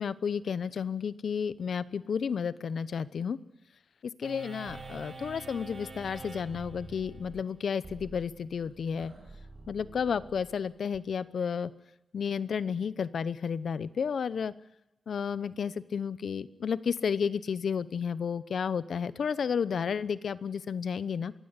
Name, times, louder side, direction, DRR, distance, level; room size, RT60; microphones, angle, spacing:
voice 1, 0.0-3.4 4.0-9.1 9.7-11.7 12.1-14.5 15.1-21.3, left 6 dB, 75° left, 17 dB, 0.9 m, -32 dB
sound 1, 4.2-11.0, right 3 dB, 40° right, 5.1 m, -47 dB
24.0 x 15.5 x 9.7 m, 0.93 s
wide cardioid pair, 145°, 0 cm